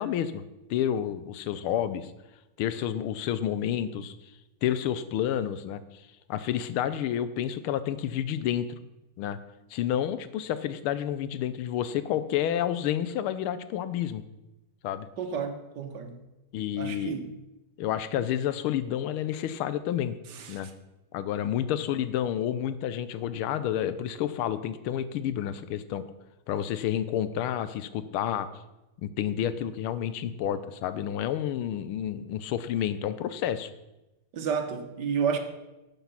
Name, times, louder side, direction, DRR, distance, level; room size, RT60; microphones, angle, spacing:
voice 1, 0.0-2.1 2.6-4.1 4.6-5.8 6.3-8.7 9.2-9.4 9.7-14.2 14.8-15.1 16.5-17.1 17.8-20.2 20.5-20.7 21.1-26.0 26.5-28.5 29.0-33.7, left 10 dB, 90° left, 1.6 m, -30 dB
voice 2, 15.2-16.2 16.8-17.3 20.3-20.7 34.3-35.4, right 6 dB, 60° right, 1.7 m, -31 dB
12.0 x 7.5 x 5.7 m
omnidirectional pair, 2.3 m